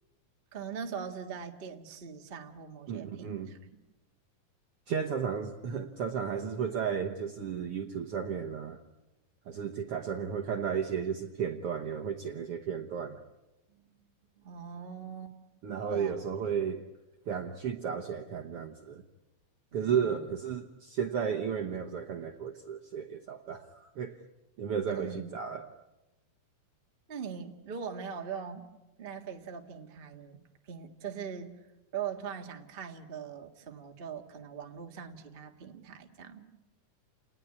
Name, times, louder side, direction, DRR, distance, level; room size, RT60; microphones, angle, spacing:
voice 1, 0.5-3.8 13.7-13.9 14.4-15.3 15.9-16.6 19.7-20.2 24.8-25.5 27.1-28.7 29.0-31.5 31.9-36.5, right 7 dB, 35° right, 4 dB, 0.9 m, -41 dB
voice 2, 2.9-3.5 4.9-8.8 9.5-13.2 15.6-16.8 17.3-19.0 19.7-24.2 24.6-25.7, right 7 dB, 65° right, 4 dB, 1.5 m, -33 dB
29.5 x 19.5 x 9.6 m, 1.0 s
omnidirectional pair, 3.9 m